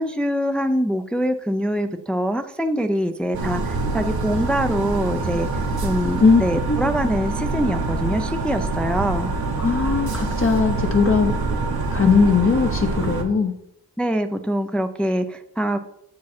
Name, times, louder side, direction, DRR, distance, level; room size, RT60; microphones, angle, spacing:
voice 1, 0.0-9.3 14.0-15.8, equal, 5° left, 8 dB, 0.4 m, -24 dB
sound 1, 3.3-13.2, right 3 dB, 70° right, 1.2 m, -25 dB
voice 2, 9.6-11.3 11.9-13.5, left 5 dB, 35° left, 3 dB, 0.7 m, -19 dB
7.2 x 4.8 x 4.3 m, 0.79 s
cardioid pair, 65°, 38 cm